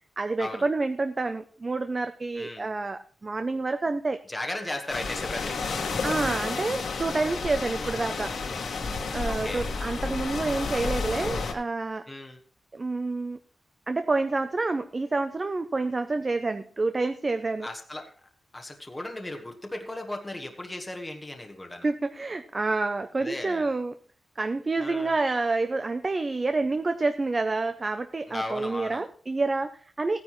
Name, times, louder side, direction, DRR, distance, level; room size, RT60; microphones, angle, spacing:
voice 1, 0.2-4.2 6.0-8.4 9.1-12.1 12.7-13.4 13.9-17.7 21.8-24.0 24.4-30.2, right 3 dB, 25° right, 9 dB, 0.5 m, -28 dB
voice 2, 2.4-2.7 4.3-5.8 7.8-8.0 9.2-9.7 12.1-12.4 17.6-18.0 18.5-21.8 23.2-23.7 24.8-25.1 28.3-29.0, left 1 dB, 10° left, 3 dB, 1.2 m, -36 dB
sound 1, 4.9-11.5, left 4 dB, 80° left, 1.9 m, -31 dB
16.5 x 9.6 x 3.1 m, 0.42 s
wide cardioid pair, 170°, 0 cm